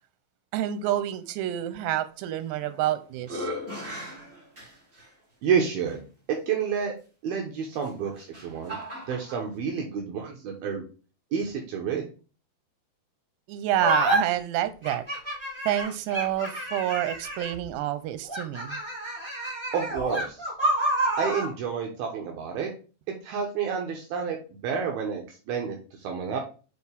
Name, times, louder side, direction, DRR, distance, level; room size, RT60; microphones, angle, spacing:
voice 1, 0.5-3.5 13.5-15.0 15.7-18.8, right 12 dB, 90° right, 2.9 m, -28 dB
sound 1, 2.4-2.9 3.2-5.1 5.9-6.0 7.7-9.4, equal, 25° right, 2.0 m, -38 dB
voice 2, 5.4-6.0 6.3-6.9 7.2-8.8 9.1-10.8 11.3-12.0 19.7-20.4 21.2-22.7 23.2-24.4 24.6-26.4, right 6 dB, 70° right, 2.7 m, -29 dB
sound 2, 13.8-14.2 14.8-17.6 18.3-21.5, right 1 dB, 10° right, 2.2 m, -28 dB
7.1 x 4.5 x 3.4 m
omnidirectional pair, 4.9 m